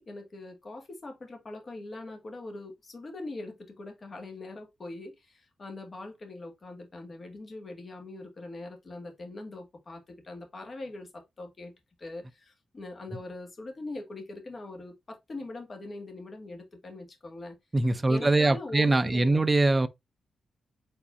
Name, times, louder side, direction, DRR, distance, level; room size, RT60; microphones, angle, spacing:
voice 1, 0.0-11.7 12.0-17.6 18.0-19.5, left 2 dB, 35° left, 1.9 m, -42 dB
voice 2, 17.7-19.9, right 2 dB, 20° right, 0.5 m, -23 dB
4.8 x 4.0 x 2.6 m
wide cardioid pair, 125°, 0 cm